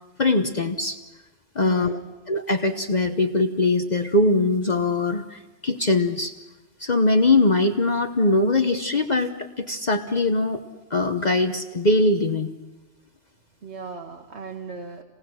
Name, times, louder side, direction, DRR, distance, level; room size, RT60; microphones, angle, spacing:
voice 1, 0.2-1.0 1.5-2.0 2.3-6.3 6.8-10.6 10.9-12.5, left 2 dB, 40° left, 6 dB, 1.0 m, -21 dB
voice 2, 1.6-2.2 13.6-15.0, right 5 dB, 70° right, 3 dB, 1.7 m, -37 dB
27.5 x 18.5 x 6.3 m, 1.1 s
omnidirectional pair, 1.2 m